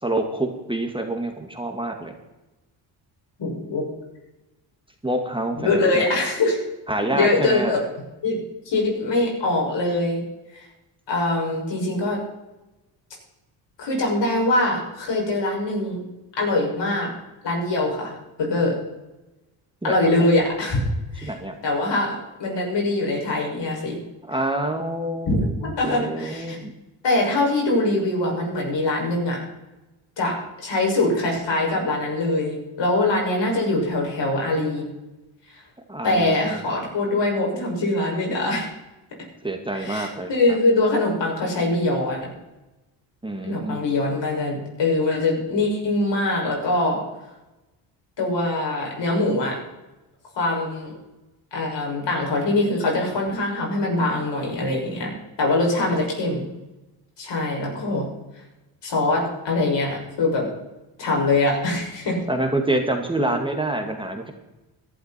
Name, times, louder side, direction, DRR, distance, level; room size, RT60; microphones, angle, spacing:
voice 1, 0.0-2.1 5.0-6.0 6.9-7.7 19.8-20.0 21.2-21.5 24.3-26.7 35.9-36.6 39.4-40.6 43.2-43.8 62.3-64.3, right 1 dB, 10° right, 4 dB, 2.1 m, -27 dB
voice 2, 3.4-3.8 5.6-6.6 7.2-7.8 8.2-8.4 8.7-10.2 10.5-10.7 11.1-12.2 13.8-16.0 16.4-17.1 17.4-18.7 19.8-20.8 21.1-21.3 21.6-24.0 25.3-26.6 27.0-29.4 30.2-34.8 36.0-38.7 39.8-42.3 43.5-47.0 48.2-49.6 50.4-50.9 51.5-55.1 55.4-56.4 57.2-58.1 58.8-60.5 61.0-62.2, left 2 dB, 60° left, -1 dB, 6.5 m, -23 dB
16.5 x 12.0 x 4.5 m, 1.0 s
supercardioid pair, 70°, 49 cm